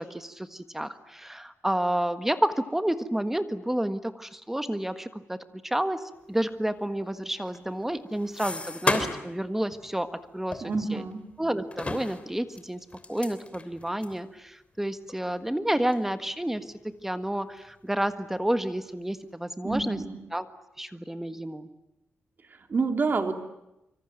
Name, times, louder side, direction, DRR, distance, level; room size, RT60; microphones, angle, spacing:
voice 1, 0.0-11.0 11.4-20.0 20.3-20.5 20.8-21.7, right 1 dB, 5° right, 10 dB, 1.5 m, -30 dB
sound 1, 7.4-9.4 9.7-9.9 10.5-11.3 11.7-14.2 14.7-14.8 15.1-15.2 15.9-16.1 16.5-17.2 17.6-18.3, left 3 dB, 30° left, 3.2 m, -34 dB
voice 2, 10.6-11.2 19.6-20.2 22.5-23.3, right 4 dB, 45° right, 6 dB, 3.3 m, -28 dB
25.5 x 25.5 x 9.0 m, 0.90 s
wide cardioid pair, 115°, 4 cm